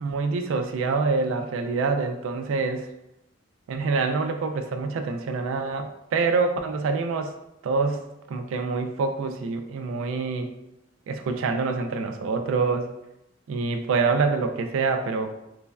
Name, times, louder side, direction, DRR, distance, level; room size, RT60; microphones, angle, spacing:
voice 1, 0.0-2.9 3.7-7.3 7.6-10.5 11.1-12.9 13.5-15.4, right 4 dB, 80° right, 7 dB, 0.3 m, -26 dB
3.1 x 2.1 x 2.3 m, 0.88 s
head